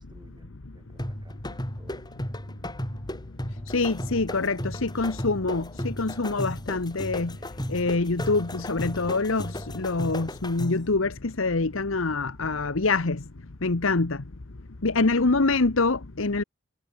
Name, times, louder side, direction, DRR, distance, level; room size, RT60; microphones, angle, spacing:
voice 1, 0.0-2.5 14.9-15.5, right 1 dB, 20° right, 6.2 m, -58 dB
sound 1, 1.0-10.9, left 1 dB, 20° left, 5.3 m, -35 dB
voice 2, 3.7-7.3 7.7-13.2 13.6-14.2 14.8-16.4, left 3 dB, 70° left, 1.1 m, -25 dB
head